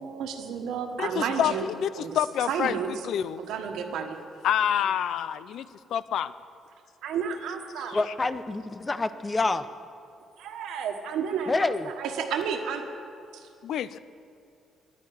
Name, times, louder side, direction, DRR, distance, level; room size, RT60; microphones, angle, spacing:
voice 1, 0.0-1.7 2.0-2.2 2.5-3.1 3.4-4.2 7.0-8.0 10.4-12.9 13.3-13.5, right 7 dB, 85° right, 5 dB, 1.3 m, -31 dB
voice 2, 1.0-2.7 3.0-3.4 4.4-6.3 7.9-8.1 13.6-14.0, left 9 dB, 75° left, 16 dB, 0.4 m, -28 dB
voice 3, 7.9-9.6 11.5-11.8, left 3 dB, 25° left, 13 dB, 0.6 m, -27 dB
10.5 x 9.4 x 9.3 m, 2.4 s
cardioid pair, 90°, 0 cm